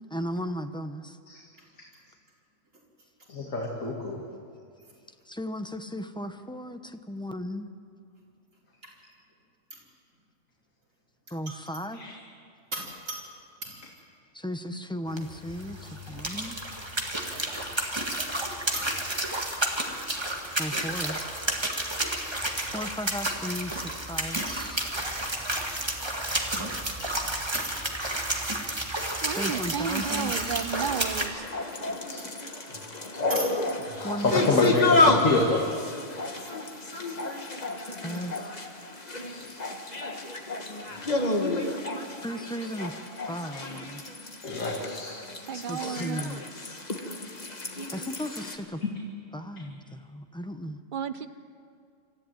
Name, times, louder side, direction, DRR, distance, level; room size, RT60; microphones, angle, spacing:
voice 1, 0.1-1.2 5.3-7.7 11.3-12.0 14.3-16.6 20.6-21.2 22.7-24.9 29.3-30.5 34.0-34.7 38.0-38.7 42.2-43.0 43.3-44.0 45.7-46.4 47.9-48.8 49.3-50.8, equal, 5° left, 7 dB, 0.7 m, -35 dB
voice 2, 3.3-4.2 11.9-12.2 14.7-14.8 24.3-24.5 32.1-32.2 33.9-35.7 39.0-39.5 43.5-43.6 44.4-45.2 45.9-46.1 48.8-48.9 49.9-50.0, left 2 dB, 80° left, -1 dB, 2.5 m, -28 dB
voice 3, 12.7-13.3 13.6-13.9 16.7-16.8 18.7-19.3 24.5-25.1 27.5-28.4 33.3-33.9 36.4-36.5, right 1 dB, 75° right, -3 dB, 5.4 m, -39 dB
sound 1, 15.1-31.3, right 1 dB, 20° right, 1.9 m, -31 dB
voice 4, 29.2-31.4 45.4-46.4 50.9-51.3, right 7 dB, 45° right, 11 dB, 0.9 m, -32 dB
sound 2, 31.4-48.6, left 2 dB, 30° left, 1.6 m, -30 dB
26.0 x 14.0 x 9.1 m, 2.3 s
omnidirectional pair, 1.4 m